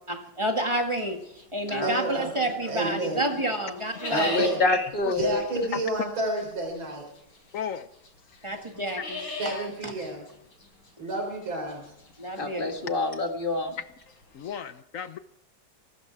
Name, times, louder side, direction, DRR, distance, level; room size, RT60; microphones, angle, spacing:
voice 1, 0.1-1.2 1.5-4.4 8.4-9.2 9.8-9.9 12.2-12.7, right 1 dB, 15° right, 4 dB, 1.9 m, -29 dB
sound 1, 0.7-2.7 3.0-14.5, left 3 dB, 85° left, 5.2 m, -41 dB
voice 2, 1.8-2.3 2.7-3.2 4.1-4.6 5.2-7.0 9.2-10.2 11.0-11.8, right 2 dB, 80° right, 1 dB, 5.0 m, -30 dB
voice 3, 4.1-5.4 12.4-13.8, left 3 dB, 25° left, 4 dB, 1.9 m, -27 dB
voice 4, 7.5-7.9 9.0-9.1 9.5-9.7 12.4-12.5 14.3-15.2, left 8 dB, 65° left, 12 dB, 0.8 m, -35 dB
22.5 x 12.5 x 4.7 m, 0.79 s
omnidirectional pair, 2.2 m